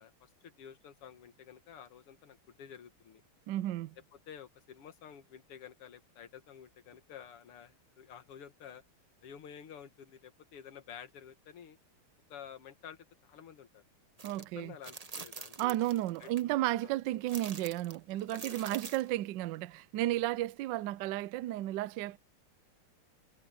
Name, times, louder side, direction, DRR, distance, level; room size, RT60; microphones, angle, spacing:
voice 1, 0.0-3.2 4.3-8.8 9.2-11.8 12.3-13.8 14.6-15.8 16.2-16.3 16.8-16.9 18.3-18.4, left 8 dB, 85° left, 2.4 m, -51 dB
voice 2, 3.5-4.0 14.2-14.7 15.6-22.2, right 15 dB, 75° right, 1.0 m, -33 dB
sound 1, 14.2-14.4 14.8-16.4 17.3-19.1, right 4 dB, 40° right, 0.5 m, -46 dB
omnidirectional pair, 2.4 m